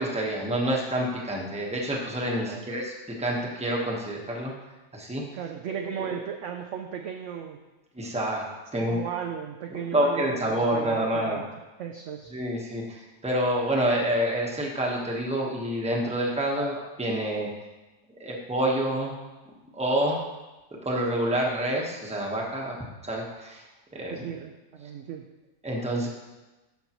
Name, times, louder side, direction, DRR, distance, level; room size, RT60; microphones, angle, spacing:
voice 1, 0.0-4.5 4.9-5.2 5.7-6.1 7.9-8.5 8.7-9.0 9.7-11.4 12.3-17.5 18.2-19.1 19.7-20.2 20.8-22.8 23.0-23.6 23.9-24.2 25.6-26.1, right 1 dB, 5° right, -2 dB, 0.9 m, -28 dB
voice 2, 5.3-7.6 8.7-11.5 11.8-12.3 24.1-25.2, right 8 dB, 70° right, 4 dB, 0.7 m, -35 dB
13.0 x 5.3 x 3.0 m, 1.1 s
omnidirectional pair, 1.7 m